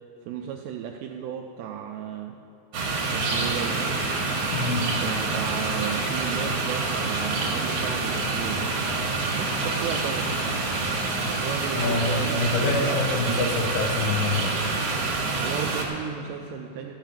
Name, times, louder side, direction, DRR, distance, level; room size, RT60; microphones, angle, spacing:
voice 1, 0.3-2.4 3.1-3.8 5.0-8.7 9.3-10.3 11.3-13.8 15.4-16.9, right 9 dB, 85° right, 3 dB, 2.5 m, -34 dB
sound 1, 2.7-15.9, right 3 dB, 55° right, 2.5 m, -27 dB
voice 2, 4.5-4.9 11.8-14.6, left 3 dB, 80° left, 0 dB, 3.3 m, -26 dB
14.0 x 5.8 x 9.0 m, 2.8 s
omnidirectional pair, 5.4 m